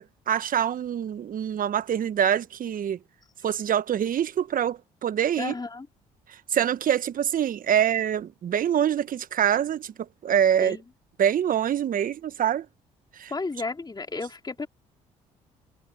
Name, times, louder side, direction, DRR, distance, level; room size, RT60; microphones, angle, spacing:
voice 1, 0.0-3.0 3.4-5.5 6.5-9.9 10.2-10.8 11.2-12.6 13.2-13.3, right 9 dB, 50° right, 1.3 m, -25 dB
voice 2, 5.4-5.9 10.6-10.8 13.3-14.7, left 3 dB, 25° left, 3.5 m, -32 dB
hypercardioid pair, 55°, 18 cm